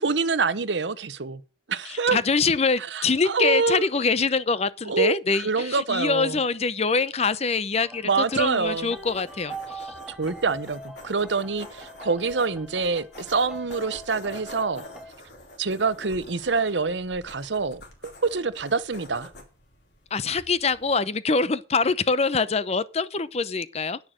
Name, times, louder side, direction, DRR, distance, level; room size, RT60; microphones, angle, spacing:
voice 1, 0.0-1.4 1.7-2.2 2.9-3.9 4.9-6.4 8.0-8.9 10.1-14.8 15.6-19.3, right 4 dB, 85° right, 0.9 m, -26 dB
voice 2, 1.8-9.9 20.1-24.0, left 4 dB, 35° left, 0.7 m, -24 dB
sound 1, 7.8-15.1, right 1 dB, ahead, 1.4 m, -42 dB
sound 2, 8.2-21.0, left 2 dB, 65° left, 3.8 m, -47 dB
10.5 x 9.5 x 6.5 m
head